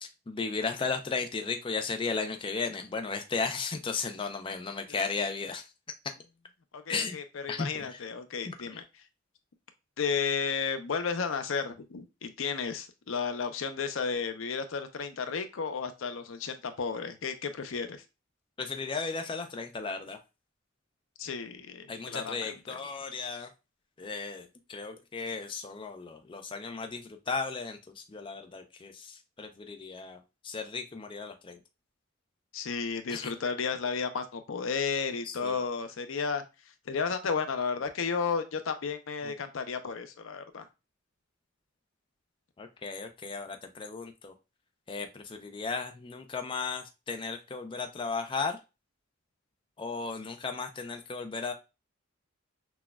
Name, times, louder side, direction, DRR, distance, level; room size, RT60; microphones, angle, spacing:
voice 1, 0.0-5.6 6.9-7.2 7.5-8.0 8.5-8.8 18.6-20.2 21.9-23.5 24.0-30.2 30.4-31.6 33.1-33.3 35.2-35.6 42.6-44.3 44.9-48.6 49.8-51.5, left 4 dB, 25° left, 6 dB, 0.4 m, -35 dB
voice 2, 6.7-8.8 10.0-18.0 21.2-22.8 32.5-36.4 36.9-40.7, left 5 dB, 75° left, 9 dB, 0.5 m, -33 dB
6.0 x 2.3 x 2.2 m, 0.27 s
head